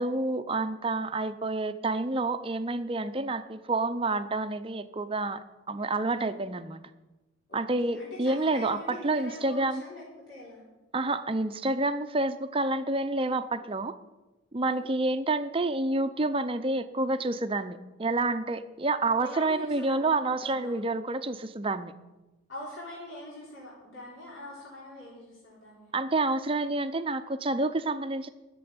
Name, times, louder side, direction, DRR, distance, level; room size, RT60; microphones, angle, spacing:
voice 1, 0.0-6.8 7.5-9.8 10.9-13.9 14.5-21.9 25.9-28.3, right 2 dB, 25° right, 11 dB, 0.5 m, -29 dB
voice 2, 7.5-10.6 14.6-14.9 19.2-20.8 22.5-25.9, left 1 dB, 70° left, -6 dB, 3.8 m, -43 dB
12.5 x 6.9 x 8.7 m, 1.1 s
head